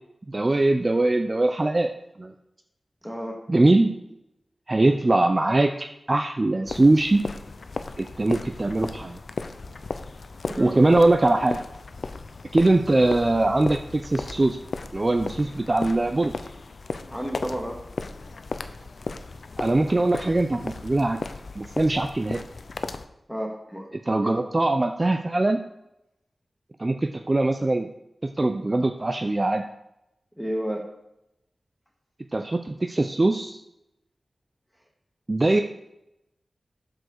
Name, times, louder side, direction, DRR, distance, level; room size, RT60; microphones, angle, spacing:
voice 1, 0.3-1.9 2.2-2.3 3.5-3.9 4.7-7.2 8.0-9.2 10.6-11.6 12.5-14.6 14.9-16.3 19.6-21.2 21.6-22.4 24.1-25.6 26.8-27.9 28.4-29.6 32.3-33.6 35.3-35.6, right 2 dB, 35° right, 6 dB, 0.5 m, -22 dB
voice 2, 3.0-3.4 10.5-10.8 17.1-17.8 23.3-23.9 24.2-24.4 30.4-30.8, equal, ahead, 1 dB, 1.9 m, -31 dB
sound 1, 6.7-23.1, left 3 dB, 70° left, 0.5 m, -36 dB
7.9 x 5.2 x 6.5 m, 0.86 s
wide cardioid pair, 60°, 0 cm